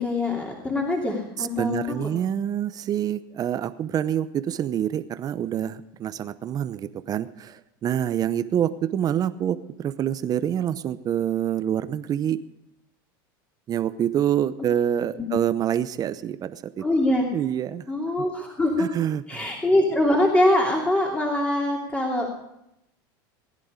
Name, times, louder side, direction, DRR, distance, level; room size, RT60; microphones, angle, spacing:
voice 1, 0.0-1.8 15.2-15.3 16.8-17.3 17.9-18.9 19.3-22.3, left 1 dB, 10° left, -1 dB, 2.9 m, -23 dB
voice 2, 1.4-12.4 13.7-16.9 17.3-17.9 18.8-19.5, right 10 dB, 35° right, 12 dB, 0.8 m, -26 dB
19.5 x 11.0 x 5.1 m, 0.82 s
supercardioid pair, 115°, 11 cm